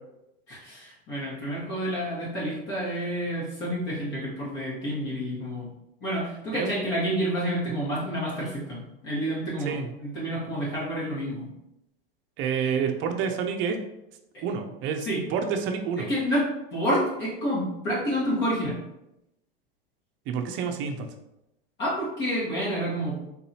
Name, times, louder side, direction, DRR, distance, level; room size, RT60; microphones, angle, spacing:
voice 1, 0.5-5.7 6.0-11.5 14.3-14.4 15.1-15.2 16.0-16.4 16.7-18.8 21.8-23.2, equal, 35° left, -7 dB, 1.4 m, -29 dB
voice 2, 12.4-13.8 14.4-16.1 20.3-21.1, right 6 dB, 40° right, 5 dB, 0.6 m, -28 dB
4.0 x 2.7 x 2.8 m, 0.88 s
hypercardioid pair, 110°, 30 cm